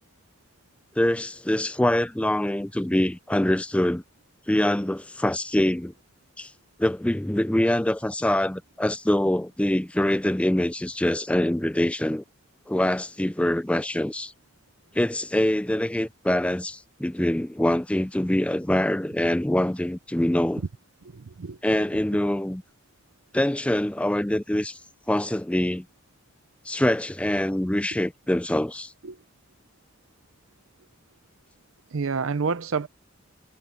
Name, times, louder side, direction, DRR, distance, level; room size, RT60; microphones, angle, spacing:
voice 1, 1.0-4.0 4.5-5.9 6.4-6.5 6.8-12.2 12.7-14.3 14.9-20.6 21.6-22.6 23.3-24.8 25.1-25.9 26.7-28.9, left 1 dB, 5° left, 0.4 m, -24 dB
voice 2, 21.0-21.6 29.0-29.2 31.9-32.9, right 5 dB, 75° right, 0.6 m, -28 dB
head